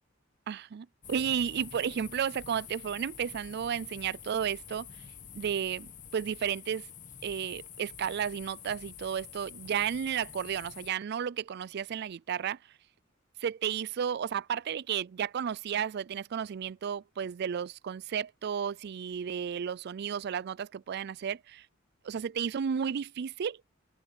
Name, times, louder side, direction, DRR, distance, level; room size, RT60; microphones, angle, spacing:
voice 1, 0.5-4.9 5.3-6.9 7.2-12.6 13.4-21.7 22.0-23.6, right 8 dB, 55° right, 0.4 m, -33 dB
sound 1, 1.0-10.9, left 8 dB, 40° left, 1.3 m, -48 dB
open air
head